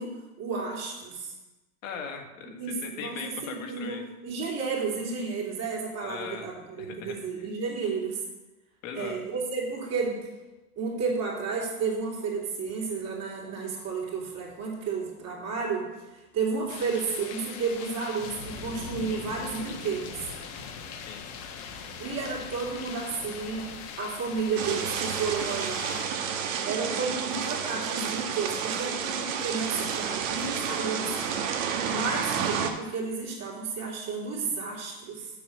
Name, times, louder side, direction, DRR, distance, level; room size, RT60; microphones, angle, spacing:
voice 1, 0.0-1.3 2.6-8.2 8.9-10.2 10.8-20.3 22.0-23.7 24.0-26.0 26.7-31.2 31.8-35.3, right 4 dB, 35° right, -2 dB, 2.6 m, -32 dB
voice 2, 1.8-4.0 6.0-6.5 6.8-7.5 8.8-9.2 21.1-21.5, left 6 dB, 65° left, 3 dB, 1.6 m, -39 dB
sound 1, 16.7-26.0, left 6 dB, 35° left, 1.1 m, -41 dB
sound 2, 24.6-32.7, right 7 dB, 60° right, 1.2 m, -30 dB
7.0 x 5.6 x 6.5 m, 1.1 s
hypercardioid pair, 125°, 43 cm